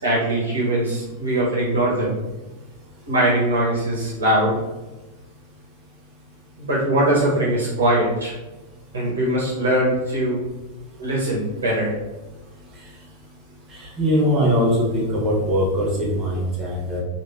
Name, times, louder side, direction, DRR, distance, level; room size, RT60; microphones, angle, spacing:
voice 1, 0.0-2.1 3.1-4.6 6.6-8.3 8.9-10.4 11.0-11.9, right 1 dB, 70° right, -5 dB, 0.8 m, -21 dB
voice 2, 13.7-17.0, equal, 25° right, -4 dB, 1.0 m, -21 dB
3.1 x 2.3 x 2.3 m, 1.1 s
figure-of-eight pair, 90°, 0 cm